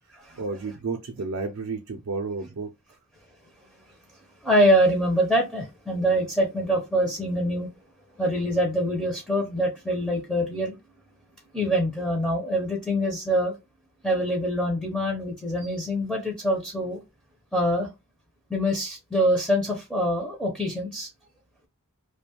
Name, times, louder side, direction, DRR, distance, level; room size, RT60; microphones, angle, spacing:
voice 1, 0.4-2.7, right 4 dB, 70° right, 0.4 m, -31 dB
voice 2, 4.4-7.7 8.2-10.8 11.5-13.6 14.0-17.0 17.5-17.9 18.5-21.1, equal, 5° left, 0.5 m, -24 dB
2.4 x 2.2 x 2.8 m
head